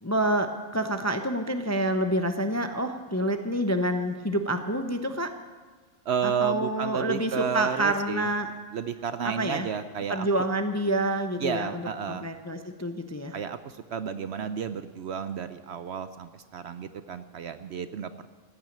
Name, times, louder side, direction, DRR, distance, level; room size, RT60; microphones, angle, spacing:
voice 1, 0.0-5.3 6.2-8.5 9.2-9.7 10.1-13.3, right 1 dB, 20° left, 7 dB, 0.5 m, -28 dB
voice 2, 6.1-8.3 8.7-10.5 11.4-12.3 13.3-18.3, right 7 dB, 60° right, 11 dB, 0.8 m, -32 dB
15.5 x 9.2 x 8.6 m, 1.5 s
omnidirectional pair, 1.4 m